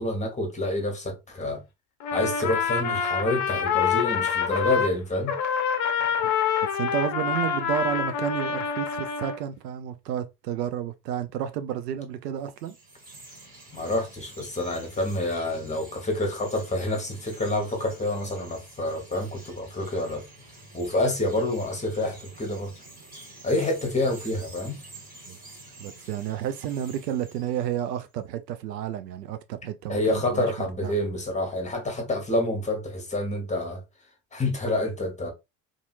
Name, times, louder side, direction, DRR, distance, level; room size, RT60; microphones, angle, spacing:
voice 1, 0.0-1.6 2.1-5.3 13.7-20.2 20.7-22.7 23.4-24.7 29.9-33.8 34.3-35.3, left 1 dB, 15° left, 1.0 m, -28 dB
Trumpet, 2.0-4.9 5.3-9.4, left 7 dB, 35° left, 0.6 m, -26 dB
voice 2, 6.7-12.8 25.3-25.4 25.8-30.9, right 10 dB, 80° right, 0.5 m, -31 dB
Chirp tweet, 12.4-28.0, right 2 dB, 20° right, 1.4 m, -48 dB
2.7 x 2.5 x 2.4 m
figure-of-eight pair, 65°, 49 cm